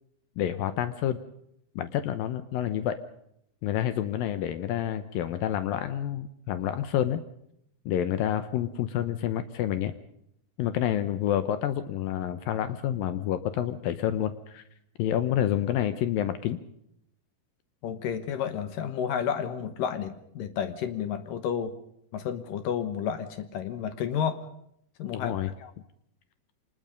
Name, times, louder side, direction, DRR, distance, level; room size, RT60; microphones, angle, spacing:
voice 1, 0.4-1.2 1.8-3.0 3.6-7.2 7.9-9.9 10.6-14.6 15.0-16.6 25.1-25.5, left 11 dB, 85° left, 11 dB, 2.0 m, -28 dB
voice 2, 17.8-21.7 22.1-24.4 25.0-25.3 25.6-25.7, left 8 dB, 70° left, 11 dB, 2.1 m, -31 dB
25.5 x 20.0 x 5.2 m, 0.73 s
omnidirectional pair, 5.3 m